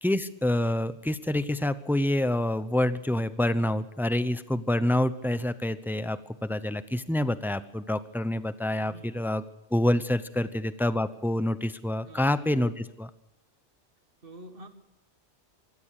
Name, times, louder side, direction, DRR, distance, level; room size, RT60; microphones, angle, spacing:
voice 1, 0.0-9.4 9.7-13.1, left 1 dB, ahead, 13 dB, 0.6 m, -27 dB
voice 2, 8.8-9.2 10.4-10.5 12.0-12.4 14.2-14.7, right 2 dB, 55° right, 8 dB, 1.9 m, -47 dB
24.0 x 16.5 x 6.6 m, 0.83 s
omnidirectional pair, 1.1 m